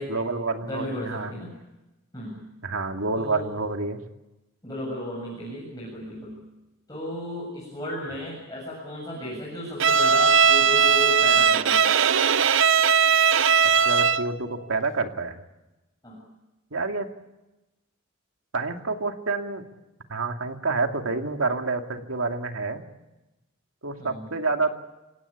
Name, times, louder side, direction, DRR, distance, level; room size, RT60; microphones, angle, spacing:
voice 1, 0.1-1.3 2.6-4.0 13.8-15.4 16.7-17.1 18.5-19.6 20.1-22.8 23.8-24.8, right 3 dB, 85° right, 4 dB, 2.5 m, -28 dB
voice 2, 0.6-1.6 2.1-2.4 3.1-3.5 4.6-6.4 6.9-11.9 16.0-16.2 24.0-24.3, left 1 dB, 20° left, -4 dB, 7.4 m, -34 dB
Bowed string instrument, 9.8-14.4, right 6 dB, 65° right, 0.7 m, -19 dB
28.5 x 17.5 x 8.5 m, 1.0 s
head